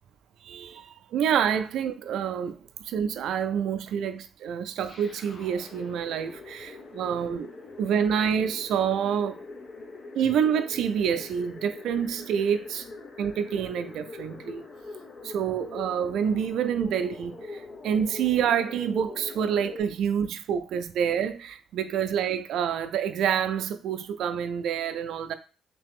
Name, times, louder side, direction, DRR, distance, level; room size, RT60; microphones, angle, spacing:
voice 1, 0.4-2.6 2.8-7.5 7.8-9.4 10.1-12.9 13.2-14.6 15.2-25.3, right 8 dB, 80° right, 0.3 m, -27 dB
sound 1, 4.9-19.8, left 3 dB, 50° left, 0.8 m, -43 dB
3.2 x 2.8 x 3.5 m
cardioid pair, 90°, 0 cm